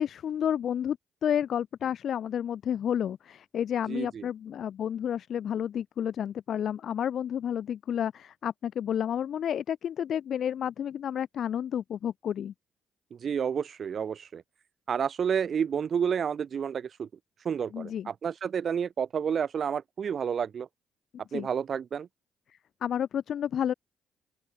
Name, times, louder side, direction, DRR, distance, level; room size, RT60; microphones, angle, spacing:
voice 1, 0.0-12.5 17.7-18.1 21.3-21.5 22.8-23.7, left 9 dB, 60° left, 0.8 m, -31 dB
voice 2, 3.9-4.3 13.2-14.4 14.9-17.1 17.4-20.7 21.3-22.1, right 7 dB, 55° right, 1.3 m, -30 dB
open air
hypercardioid pair, 45°, 0 cm